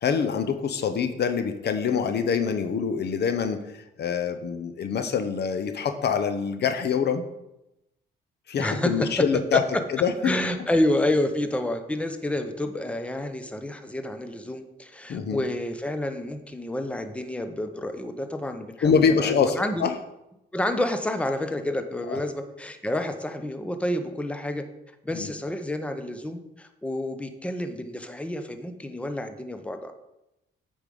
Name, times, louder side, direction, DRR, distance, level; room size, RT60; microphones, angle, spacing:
voice 1, 0.0-7.3 8.5-9.6 9.9-10.3 15.1-15.4 18.8-19.9 22.1-22.2 25.1-25.3, left 6 dB, 55° left, 9 dB, 0.8 m, -25 dB
voice 2, 8.6-9.3 9.5-9.6 10.2-19.9 20.5-24.6 25.0-29.9, left 1 dB, 5° left, 8 dB, 0.9 m, -29 dB
8.2 x 5.4 x 5.3 m, 0.90 s
cardioid pair, 90°, 20 cm